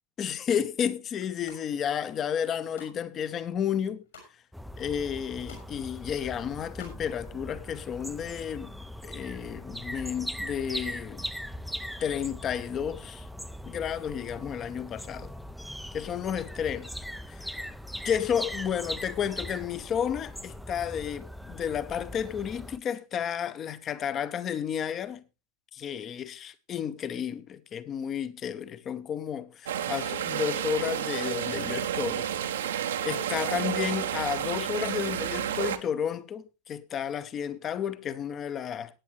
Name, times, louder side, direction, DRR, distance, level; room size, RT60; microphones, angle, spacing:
voice 1, 0.2-4.0 4.8-8.7 9.0-11.3 12.0-13.3 13.6-15.3 15.9-16.9 17.3-17.6 18.0-25.2 25.7-32.3 32.5-32.7 33.0-39.0, left 8 dB, 30° left, 0.9 m, -32 dB
sound 1, 1.2-1.6 2.2-3.0 3.4-4.3 4.8-4.9 5.1-5.7 6.0-7.0 7.3-7.4, left 4 dB, 65° left, 5.8 m, -50 dB
sound 2, 4.5-22.8, equal, ahead, 0.6 m, -40 dB
sound 3, 29.6-35.8, right 10 dB, 60° right, 1.0 m, -31 dB
16.5 x 9.5 x 3.2 m
figure-of-eight pair, 90°, 0 cm